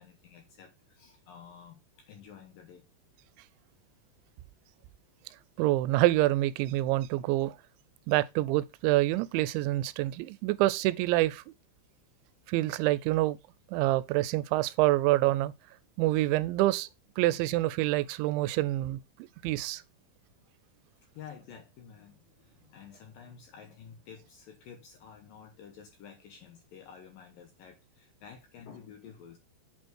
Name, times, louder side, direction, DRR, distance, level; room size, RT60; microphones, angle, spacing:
voice 1, 0.0-2.9 21.1-29.4, left 7 dB, 70° left, 2.2 m, -51 dB
voice 2, 5.6-7.6 8.1-11.4 12.5-13.4 13.7-15.5 16.0-16.9 17.2-19.0 19.4-19.8, right 17 dB, 85° right, 2.9 m, -26 dB
8.2 x 4.4 x 4.6 m
omnidirectional pair, 5.2 m